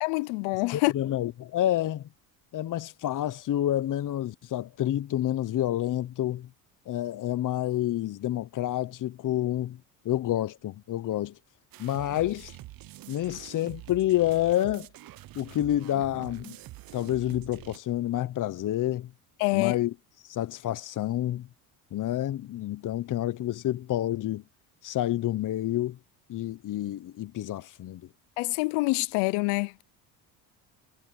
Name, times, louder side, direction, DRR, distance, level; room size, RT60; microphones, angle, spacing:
voice 1, 0.0-0.9 19.4-19.8 28.4-29.7, left 26 dB, 85° left, 0.7 m, -26 dB
voice 2, 0.7-2.1 2.5-6.5 6.9-11.4 11.8-12.6 13.1-14.9 15.3-16.6 16.9-19.1 19.5-19.9 20.3-21.5 21.9-24.4 24.8-26.0 26.3-28.0, left 13 dB, 50° left, 1.0 m, -29 dB
sound 1, 11.7-17.8, right 16 dB, 55° right, 0.9 m, -46 dB
supercardioid pair, 95°, 42 cm